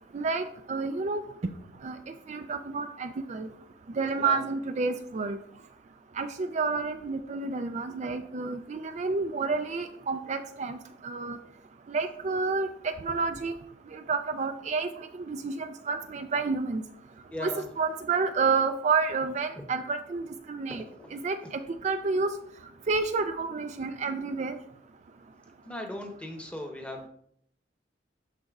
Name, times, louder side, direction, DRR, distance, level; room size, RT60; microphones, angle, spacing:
voice 1, 0.1-1.2 1.8-2.0 2.3-3.5 4.0-5.4 6.2-10.8 11.0-11.4 11.9-13.5 13.9-16.8 17.4-17.5 17.8-20.2 20.5-20.8 21.1-22.3 22.9-24.5, right 4 dB, 40° right, 8 dB, 0.4 m, -29 dB
voice 2, 17.3-17.6 19.6-19.7 20.7-21.2 25.6-27.1, left 1 dB, 5° left, 3 dB, 0.9 m, -38 dB
11.5 x 4.2 x 2.4 m, 0.67 s
head